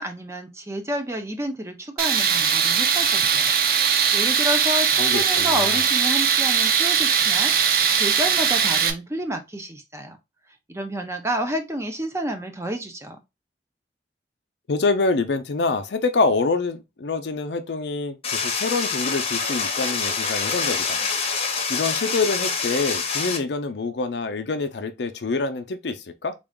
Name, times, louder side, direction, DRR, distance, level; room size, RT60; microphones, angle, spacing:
voice 1, 0.0-10.2 10.7-13.2, equal, 15° right, 0.6 m, -30 dB
Tools, 2.0-8.9, right 7 dB, 55° right, 0.6 m, -20 dB
voice 2, 5.0-5.8 14.7-21.0 21.7-26.3, left 3 dB, 75° left, 0.5 m, -26 dB
sound 1, 18.2-23.4, left 5 dB, 35° left, 0.8 m, -26 dB
3.8 x 2.4 x 3.5 m
head